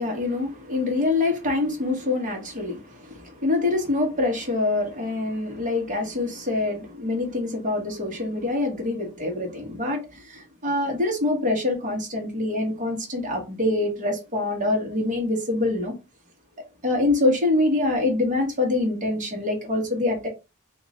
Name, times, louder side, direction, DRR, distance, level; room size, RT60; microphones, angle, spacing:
voice 1, 0.0-15.9 16.8-20.3, left 2 dB, 35° right, 1.5 m, -25 dB
3.2 x 2.9 x 3.8 m
head